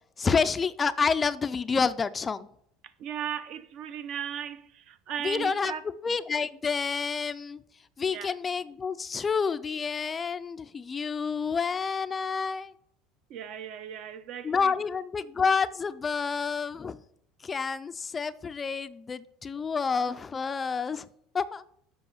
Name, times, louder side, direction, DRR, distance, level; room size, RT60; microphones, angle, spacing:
voice 1, 0.2-2.5 5.2-5.7 6.0-7.6 8.0-12.7 14.4-17.0 17.4-21.1 21.3-21.6, left 5 dB, 20° left, 0.4 m, -29 dB
voice 2, 2.8-5.8 8.1-8.3 13.3-14.7, right 9 dB, 55° right, 0.8 m, -37 dB
7.8 x 5.4 x 5.7 m
supercardioid pair, 125°, 0 cm